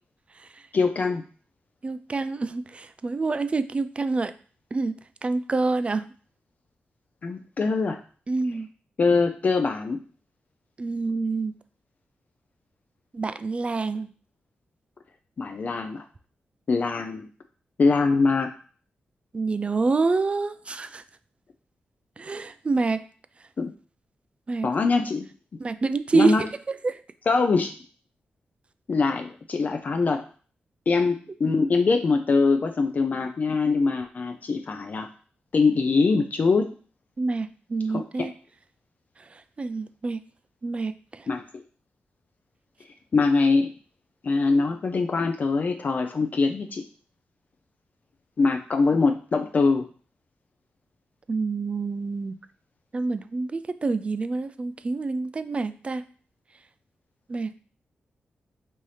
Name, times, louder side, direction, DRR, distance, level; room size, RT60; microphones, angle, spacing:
voice 1, 0.7-1.2 7.2-8.0 9.0-10.0 15.4-16.0 16.7-17.3 17.8-18.5 23.6-23.7 24.6-25.3 26.1-26.5 27.3-27.7 28.9-30.2 30.9-35.1 35.5-36.7 37.9-38.3 41.3-41.4 43.1-43.7 44.2-46.8 48.4-49.9, left 4 dB, 45° left, 5 dB, 0.4 m, -23 dB
voice 2, 1.8-4.3 4.7-6.0 8.3-8.7 10.8-11.5 13.1-14.1 19.3-21.0 22.2-23.0 24.5-24.7 25.6-26.5 26.8-27.0 37.2-38.3 39.6-40.2 40.6-41.3 51.3-52.3 52.9-56.0 57.3-57.5, right 3 dB, 30° right, 12 dB, 0.3 m, -27 dB
5.4 x 2.7 x 3.2 m, 0.42 s
cardioid pair, 85°, 4 cm